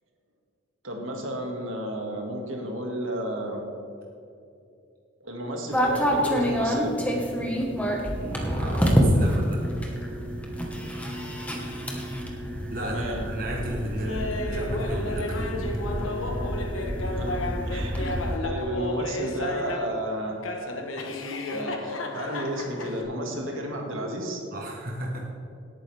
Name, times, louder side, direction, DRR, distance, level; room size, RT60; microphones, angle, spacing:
voice 1, 0.8-3.6 5.2-7.0 12.8-13.3 17.1-20.4 21.5-24.4, right 1 dB, 80° right, 1 dB, 2.1 m, -32 dB
sound 1, 5.7-18.4, equal, 5° left, 1.3 m, -27 dB
voice 2, 8.1-9.6 12.7-16.0 24.5-25.2, right 1 dB, 45° right, -1 dB, 1.2 m, -35 dB
Laughter, 14.0-20.0 20.4-23.0, left 2 dB, 90° left, 1.4 m, -32 dB
17.5 x 9.0 x 3.5 m, 2.6 s
head